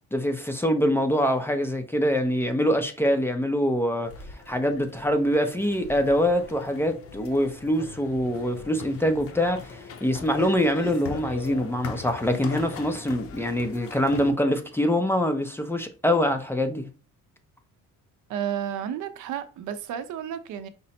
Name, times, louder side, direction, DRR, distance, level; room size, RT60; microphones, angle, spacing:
voice 1, 0.1-16.9, equal, 10° left, 0.5 m, -24 dB
sound 1, 4.0-14.3, left 5 dB, 45° left, 0.8 m, -40 dB
voice 2, 18.3-20.7, right 9 dB, 75° right, 0.7 m, -32 dB
5.1 x 2.1 x 4.2 m
cardioid pair, 125°, 30 cm